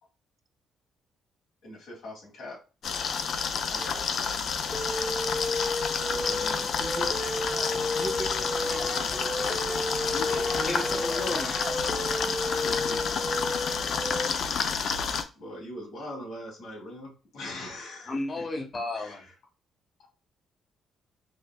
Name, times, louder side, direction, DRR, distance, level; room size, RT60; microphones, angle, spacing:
voice 1, 1.6-2.6 3.7-4.0 6.1-6.7 10.0-10.7 12.6-13.3 15.3-18.4 18.9-19.3, left 1 dB, 80° left, 1.5 m, -42 dB
sound 1, 2.8-15.2, left 6 dB, 60° left, 0.4 m, -30 dB
voice 2, 3.8-4.2 6.8-7.2 7.9-9.1 10.5-11.0, right 2 dB, 35° right, 0.4 m, -40 dB
sound 2, 4.7-14.3, left 1 dB, 15° left, 0.6 m, -32 dB
sound 3, 7.2-12.9, right 1 dB, 10° right, 0.9 m, -42 dB
voice 3, 10.7-11.5 18.1-19.2, left 2 dB, 40° left, 0.9 m, -33 dB
4.8 x 2.1 x 2.2 m
cardioid pair, 90°, 0 cm